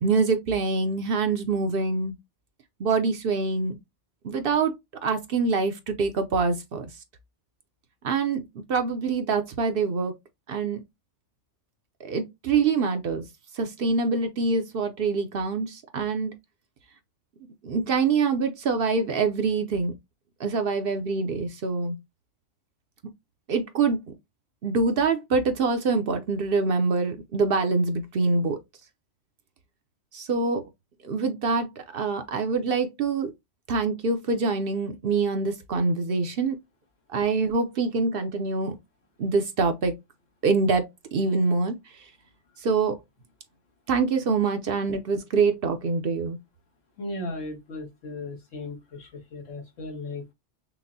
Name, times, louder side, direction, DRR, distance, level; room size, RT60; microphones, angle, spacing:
voice 1, 0.0-2.1 2.8-3.8 4.2-4.7 5.0-6.9 8.0-8.4 8.7-10.1 10.5-10.8 12.0-13.2 13.6-16.3 17.6-19.9 20.4-21.9 23.5-24.0 24.6-28.6 30.1-30.6 31.0-33.3 33.7-36.6 37.1-38.8 39.2-39.9 40.4-41.8 42.6-43.0 43.9-46.4, right 4 dB, 60° right, 0.7 m, -25 dB
voice 2, 47.0-50.3, left 2 dB, 90° left, 1.6 m, -36 dB
5.8 x 2.0 x 2.6 m
omnidirectional pair, 1.2 m